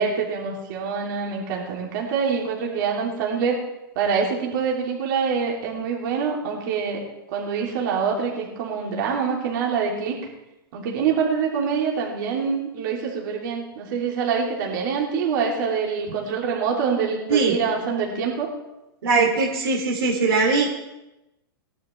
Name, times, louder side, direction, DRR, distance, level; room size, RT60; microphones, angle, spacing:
voice 1, 0.0-3.6 3.9-7.0 7.3-10.2 10.7-18.5, right 6 dB, 55° right, -2 dB, 3.1 m, -25 dB
voice 2, 19.0-20.7, right 4 dB, 80° right, -1 dB, 2.9 m, -20 dB
18.0 x 11.5 x 3.4 m, 0.96 s
hypercardioid pair, 145°, 12 cm